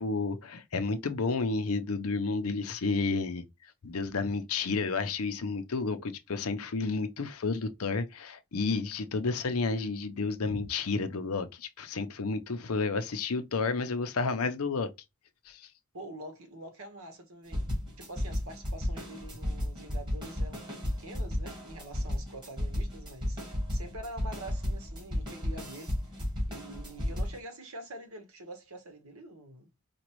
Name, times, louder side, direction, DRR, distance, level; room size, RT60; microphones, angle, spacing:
voice 1, 0.0-3.4 3.8-14.9 15.5-15.6, left 4 dB, 70° left, 0.7 m, -31 dB
voice 2, 15.9-17.7 18.0-23.4 23.7-26.0 26.5-29.7, right 1 dB, 65° right, 1.3 m, -45 dB
sound 1, 17.5-27.4, left 1 dB, 20° right, 1.9 m, -33 dB
5.1 x 2.3 x 3.0 m
head